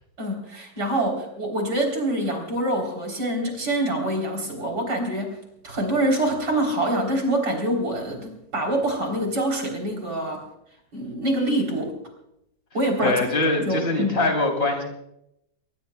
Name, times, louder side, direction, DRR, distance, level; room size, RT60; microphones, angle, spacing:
voice 1, 0.2-5.4 5.6-10.4 10.9-11.9 12.7-13.2 13.6-14.2, right 1 dB, 55° right, 1 dB, 4.4 m, -25 dB
voice 2, 13.0-14.8, left 2 dB, 30° left, 2 dB, 3.8 m, -23 dB
23.0 x 20.5 x 2.3 m, 0.80 s
omnidirectional pair, 2.1 m